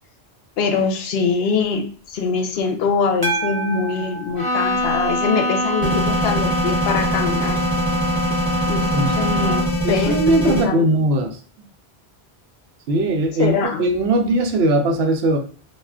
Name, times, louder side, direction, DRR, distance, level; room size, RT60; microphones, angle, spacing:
voice 1, 0.6-7.6 8.7-11.1 13.4-13.8, left 5 dB, 75° left, 5 dB, 0.8 m, -23 dB
sound 1, 3.2-5.6, right 2 dB, 30° right, 0.4 m, -29 dB
Bowed string instrument, 4.4-9.9, equal, 45° left, 1.1 m, -24 dB
sound 2, 5.8-10.7, left 1 dB, 10° right, 0.9 m, -23 dB
voice 2, 8.9-9.3 9.8-11.4 12.9-15.4, right 1 dB, 80° right, 4 dB, 0.8 m, -19 dB
2.4 x 2.3 x 3.4 m, 0.42 s
omnidirectional pair, 1.1 m